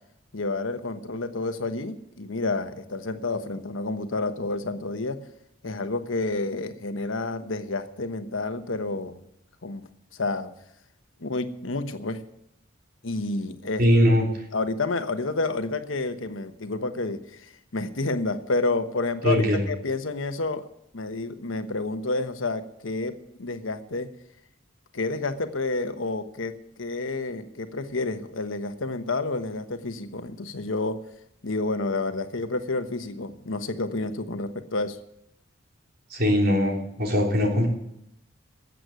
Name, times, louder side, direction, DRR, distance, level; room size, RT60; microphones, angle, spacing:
voice 1, 0.3-5.2 5.6-9.2 9.6-9.8 10.1-10.5 11.2-12.2 13.0-13.8 14.5-20.7 20.9-24.1 24.9-31.0 31.4-35.0, left 3 dB, 80° left, 9 dB, 1.2 m, -29 dB
voice 2, 13.8-14.3 19.2-19.6 36.1-37.7, equal, 50° right, 1 dB, 3.5 m, -21 dB
13.5 x 8.0 x 9.5 m, 0.79 s
head